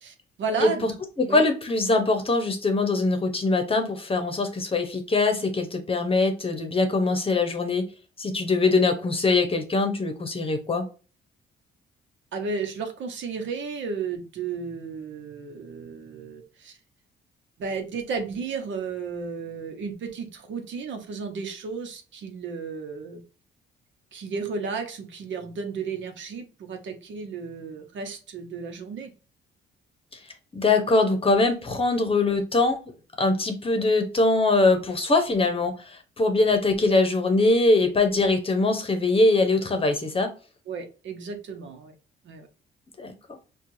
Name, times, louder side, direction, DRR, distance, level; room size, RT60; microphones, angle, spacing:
voice 1, 0.0-1.0 1.3-1.4 12.3-16.8 17.6-23.2 24.1-29.1 40.7-41.9 42.2-42.5, right 5 dB, 70° right, 5 dB, 0.9 m, -33 dB
voice 2, 1.2-7.8 8.2-10.9 30.5-32.8 33.2-35.7 36.2-40.3 43.0-43.1, left 3 dB, 30° left, 6 dB, 0.9 m, -22 dB
4.4 x 2.4 x 2.7 m, 0.35 s
cardioid pair, 90°, 20 cm